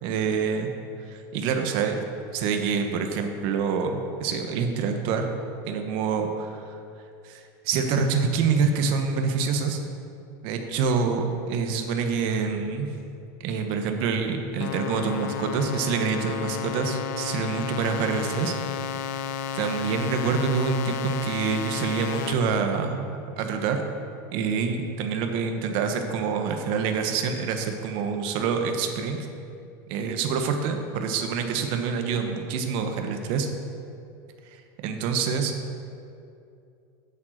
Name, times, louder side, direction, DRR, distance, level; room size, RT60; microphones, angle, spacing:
voice 1, 0.0-0.7 1.1-2.1 2.3-5.3 5.7-6.7 7.2-9.8 10.4-12.9 13.4-18.5 19.0-19.1 19.5-23.8 24.3-29.2 29.9-33.5 34.5-35.5, right 5 dB, 55° right, 5 dB, 1.2 m, -26 dB
sound 1, 14.6-22.3, left 8 dB, 75° left, 0.7 m, -32 dB
8.3 x 7.7 x 6.5 m, 2.5 s
supercardioid pair, 145°, 10 cm